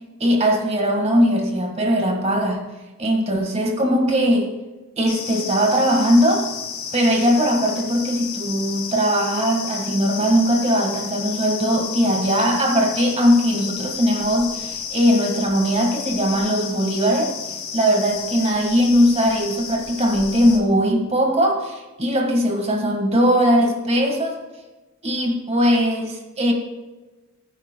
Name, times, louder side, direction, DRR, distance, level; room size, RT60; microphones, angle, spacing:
voice 1, 0.2-2.6 3.0-4.5 5.0-6.5 6.9-17.3 17.7-24.4 25.0-26.5, equal, 30° right, 3 dB, 1.7 m, -19 dB
sound 1, 5.1-20.6, left 6 dB, 85° left, 3.0 m, -32 dB
20.5 x 9.5 x 2.2 m, 1.2 s
head